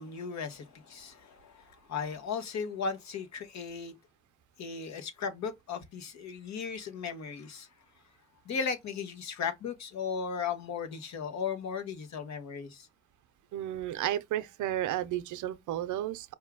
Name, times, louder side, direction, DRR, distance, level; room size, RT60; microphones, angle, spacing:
voice 1, 0.0-3.9 4.6-7.7 8.5-12.9, left 6 dB, 65° left, 1.2 m, -36 dB
voice 2, 13.5-16.3, right 12 dB, 80° right, 0.6 m, -33 dB
4.7 x 2.7 x 3.6 m
cardioid pair, 90°, 30 cm